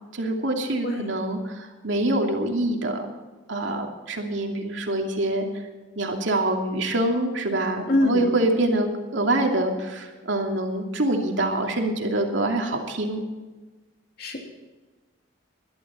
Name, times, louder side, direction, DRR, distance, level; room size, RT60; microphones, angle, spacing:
voice 1, 0.1-3.0 3.5-5.5 6.0-13.2, right 1 dB, 65° right, 2 dB, 2.7 m, -25 dB
voice 2, 7.9-8.3 14.2-14.4, left 1 dB, 50° left, 1 dB, 3.0 m, -23 dB
20.5 x 12.0 x 4.3 m, 1.2 s
head